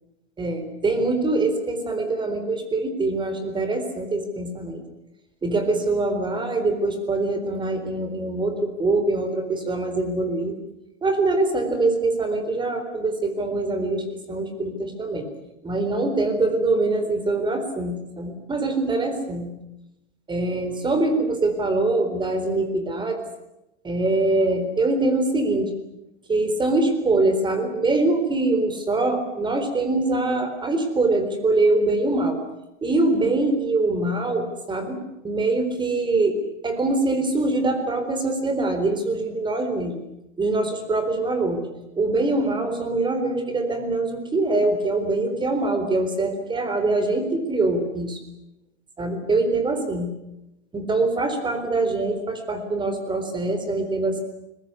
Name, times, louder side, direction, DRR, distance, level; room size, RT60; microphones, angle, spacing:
voice 1, 0.4-4.8 5.4-10.5 11.0-15.3 15.6-19.5 20.3-23.2 23.8-25.7 26.3-32.4 32.8-40.0 40.4-41.7 42.0-48.2 49.0-50.1 50.7-54.2, right 2 dB, 15° right, 8 dB, 4.0 m, -23 dB
22.0 x 21.0 x 9.7 m, 0.90 s
supercardioid pair, 140°, 35 cm